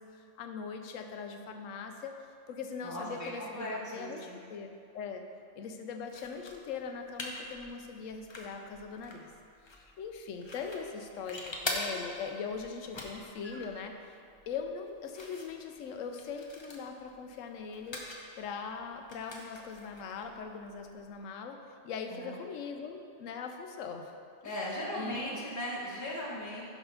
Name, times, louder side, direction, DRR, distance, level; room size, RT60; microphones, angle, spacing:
voice 1, 0.0-4.7 4.9-5.2 5.6-9.3 9.7-14.2 14.5-18.0 18.4-21.6 21.8-24.1 24.4-24.5 24.9-25.2, left 5 dB, 80° left, 5 dB, 1.0 m, -41 dB
voice 2, 2.8-4.4 22.1-22.4 24.4-26.6, equal, 15° left, -6 dB, 1.1 m, -38 dB
sound 1, 6.1-21.2, left 2 dB, 30° left, 0.5 m, -45 dB
6.0 x 5.1 x 5.5 m, 2.4 s
omnidirectional pair, 1.3 m